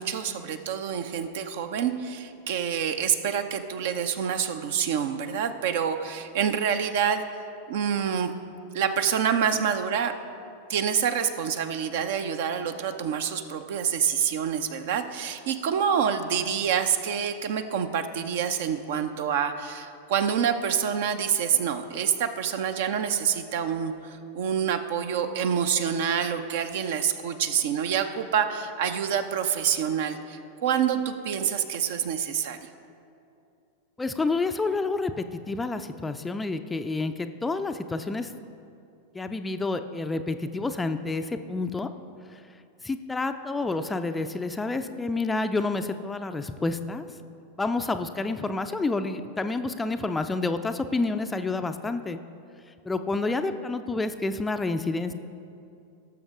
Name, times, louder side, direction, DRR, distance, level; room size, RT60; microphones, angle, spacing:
voice 1, 0.0-7.2 7.7-8.3 8.7-10.1 10.7-32.7, right 8 dB, 55° right, 9 dB, 0.7 m, -27 dB
voice 2, 34.0-38.3 39.1-41.9 42.3-42.4 42.8-47.1 47.6-52.2 52.9-55.1, left 3 dB, 10° left, 8 dB, 0.4 m, -29 dB
17.5 x 7.1 x 3.7 m, 2.6 s
figure-of-eight pair, 90°, 0 cm